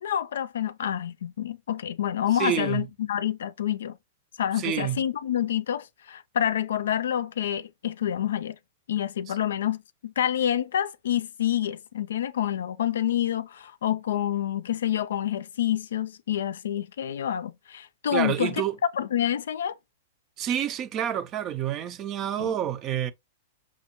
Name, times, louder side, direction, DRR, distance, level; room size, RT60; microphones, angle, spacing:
voice 1, 0.0-4.0 4.4-8.6 8.9-18.6 19.0-19.7 22.4-22.5, left 10 dB, 75° left, 0.4 m, -28 dB
voice 2, 2.3-2.8 4.6-5.0 18.1-18.7 20.4-23.1, right 10 dB, 35° right, 0.5 m, -28 dB
6.1 x 2.1 x 2.9 m
hypercardioid pair, 110°, 0 cm